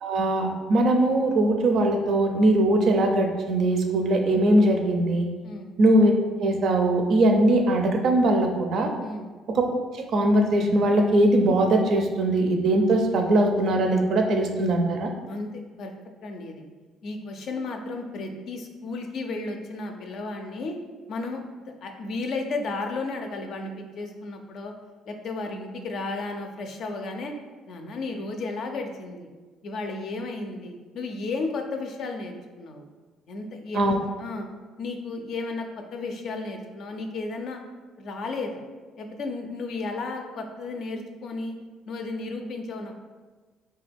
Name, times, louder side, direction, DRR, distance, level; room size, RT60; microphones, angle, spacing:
voice 1, 0.0-5.3 5.8-6.1 6.4-8.9 9.9-15.1 33.7-34.0, right 1 dB, 60° right, 3 dB, 0.4 m, -21 dB
voice 2, 15.3-15.9 16.2-16.6 17.0-20.8 21.1-21.4 21.8-24.7 25.1-27.3 27.7-29.3 29.6-32.8 33.3-34.5 34.8-37.6 38.0-38.6 39.0-41.6 41.9-43.0, left 3 dB, 60° left, 4 dB, 0.4 m, -33 dB
3.2 x 2.2 x 3.4 m, 1.3 s
hypercardioid pair, 55°, 0 cm